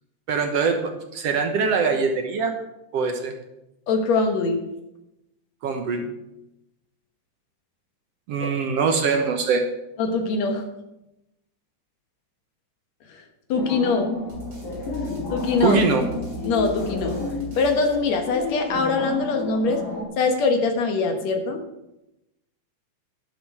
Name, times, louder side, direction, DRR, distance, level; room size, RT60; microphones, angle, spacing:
voice 1, 0.3-2.6 2.9-3.3 5.6-6.1 8.3-9.6 15.6-16.0, right 5 dB, 65° right, 5 dB, 1.9 m, -23 dB
voice 2, 3.9-4.6 10.0-10.7 13.5-14.1 15.3-15.8 16.4-17.2 17.6-19.8 20.2-21.6, left 4 dB, 65° left, 5 dB, 2.4 m, -22 dB
sound 1, 13.5-20.0, left 3 dB, 85° left, 4.3 m, -31 dB
sound 2, 14.3-18.6, left 2 dB, 30° right, 3.6 m, -38 dB
11.5 x 11.5 x 4.8 m, 0.90 s
omnidirectional pair, 3.5 m